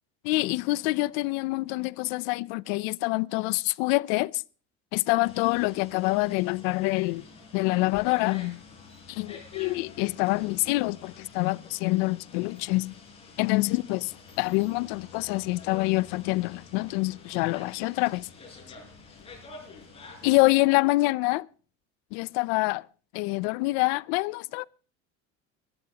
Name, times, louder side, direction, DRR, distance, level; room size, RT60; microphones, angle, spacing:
voice 1, 0.2-4.4 4.9-7.2 7.5-8.6 9.1-13.0 13.4-14.0 14.4-18.3 20.2-21.5 22.1-22.8 23.1-24.7, left 23 dB, 85° left, 0.6 m, -26 dB
sound 1, 5.2-20.4, left 4 dB, 20° left, 5.3 m, -49 dB
22.5 x 11.5 x 2.9 m
cardioid pair, 165°, 31 cm